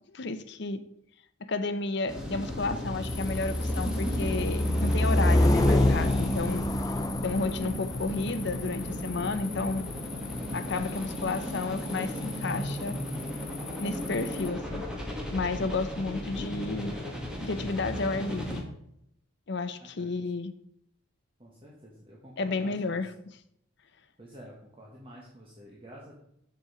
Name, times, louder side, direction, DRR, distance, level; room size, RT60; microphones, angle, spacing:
voice 1, 0.1-0.8 1.4-6.7 7.2-9.8 10.5-13.0 13.8-14.9 15.3-16.9 17.4-18.7 19.5-20.5 22.4-23.4, left 3 dB, 55° left, 11 dB, 0.7 m, -32 dB
sound 1, 2.1-18.6, equal, 5° right, 1.7 m, -35 dB
sound 2, 3.0-14.5, left 1 dB, 20° left, 0.4 m, -28 dB
voice 2, 21.4-23.0 24.2-26.1, equal, 25° right, -4 dB, 1.5 m, -49 dB
7.6 x 6.8 x 5.0 m, 0.75 s
head